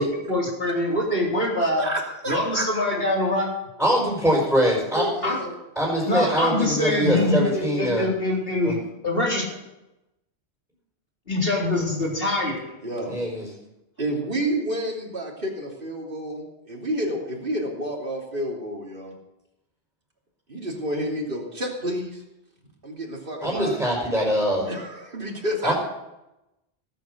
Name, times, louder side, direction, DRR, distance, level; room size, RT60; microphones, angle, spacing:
voice 1, 0.0-1.9 2.3-3.5 5.2-5.4 6.1-8.7 9.0-9.4 11.3-12.6, left 1 dB, 60° left, -2 dB, 4.1 m, -24 dB
voice 2, 1.6-2.6 4.9-5.5 6.7-7.3 12.8-13.2 14.0-19.1 20.5-22.2 22.8-23.9 24.7-25.7, right 1 dB, 55° right, -1 dB, 3.4 m, -30 dB
voice 3, 3.8-5.1 5.7-8.1 8.6-8.8 13.1-13.5 23.4-24.7 25.6-25.7, equal, ahead, -3 dB, 5.2 m, -23 dB
18.5 x 8.9 x 6.6 m, 0.92 s
omnidirectional pair, 1.1 m